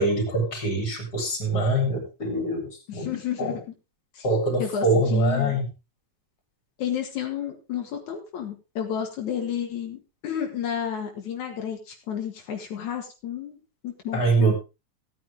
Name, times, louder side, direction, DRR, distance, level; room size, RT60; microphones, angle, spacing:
voice 1, 0.0-3.1 3.4-3.6 4.2-5.7 14.1-14.5, right 2 dB, 30° left, 3 dB, 4.3 m, -24 dB
voice 2, 2.9-3.7 4.1-4.3 4.6-5.6 6.8-14.5, left 8 dB, 80° left, 2 dB, 3.2 m, -31 dB
16.0 x 9.2 x 3.5 m, 0.28 s
omnidirectional pair, 3.3 m